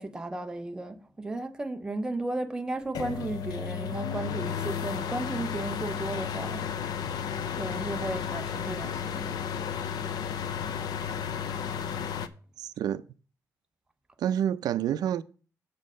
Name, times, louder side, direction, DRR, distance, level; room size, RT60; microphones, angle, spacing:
voice 1, 0.0-6.6 7.5-9.4, right 2 dB, 10° right, 0.5 m, -34 dB
sound 1, 2.9-12.3, left 8 dB, 85° left, 0.6 m, -33 dB
voice 2, 12.6-13.0 14.2-15.2, right 10 dB, 85° right, 0.4 m, -28 dB
7.3 x 4.4 x 6.2 m
wide cardioid pair, 170°, 7 cm